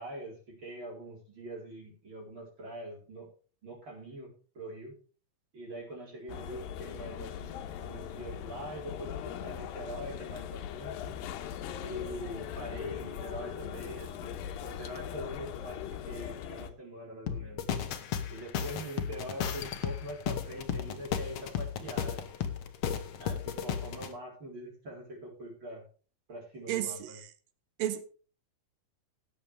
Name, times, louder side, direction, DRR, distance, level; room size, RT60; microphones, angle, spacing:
voice 1, 0.0-3.3 3.6-5.0 5.5-7.5 7.8-11.1 11.8-15.8 16.1-17.6 18.3-22.2 23.2-25.8 26.3-27.2, right 1 dB, 35° right, 4.8 m, -43 dB
sound 1, 6.3-16.7, left 9 dB, 90° left, 2.6 m, -40 dB
sound 2, 17.3-24.1, left 8 dB, 60° left, 1.8 m, -34 dB
voice 2, 26.7-27.1 27.8-28.0, right 12 dB, 85° right, 2.8 m, -32 dB
18.0 x 7.8 x 3.4 m
omnidirectional pair, 4.0 m